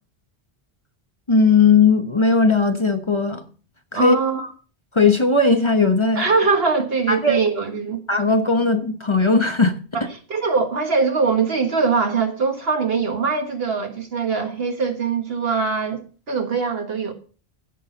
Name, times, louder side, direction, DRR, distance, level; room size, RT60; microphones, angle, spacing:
voice 1, 1.3-3.4 3.9-4.2 4.9-6.2 7.1-7.5 8.1-10.1, left 4 dB, 30° left, 0.9 m, -18 dB
voice 2, 3.9-4.5 6.1-8.0 10.3-17.1, right 4 dB, 70° right, 1.7 m, -22 dB
16.0 x 6.2 x 4.0 m
omnidirectional pair, 1.1 m